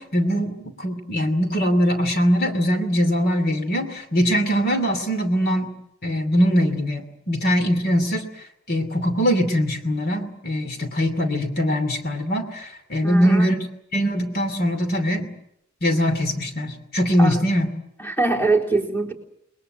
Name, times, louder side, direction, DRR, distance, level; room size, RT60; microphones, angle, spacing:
voice 1, 0.0-5.7 6.0-8.3 8.7-13.6 13.9-15.3 15.8-17.7, equal, 50° left, 6 dB, 2.7 m, -22 dB
voice 2, 13.0-13.5 17.2-17.3 18.0-19.1, right 3 dB, 10° left, 1 dB, 3.9 m, -23 dB
29.5 x 21.5 x 7.9 m, 0.78 s
head